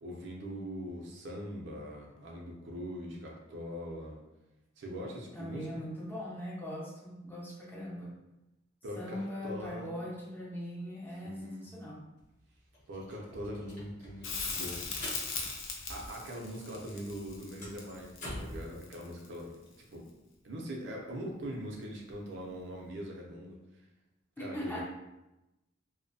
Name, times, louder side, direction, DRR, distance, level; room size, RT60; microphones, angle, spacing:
voice 1, 0.0-4.2 4.8-5.7 8.8-9.9 11.2-11.7 12.9-14.9 15.9-19.5 19.9-20.1 20.4-23.6 24.4-24.8, equal, 65° right, -1 dB, 0.5 m, -42 dB
voice 2, 5.3-8.2 9.0-12.0 24.4-24.8, equal, 10° left, -4 dB, 0.4 m, -40 dB
sound 1, 12.2-12.3 12.5-16.5 16.7-18.7, left 1 dB, 40° left, 0.9 m, -46 dB
Crackle, 14.2-19.4 22.1-22.2, left 4 dB, 80° left, 0.5 m, -39 dB
2.6 x 2.1 x 2.6 m, 0.97 s
head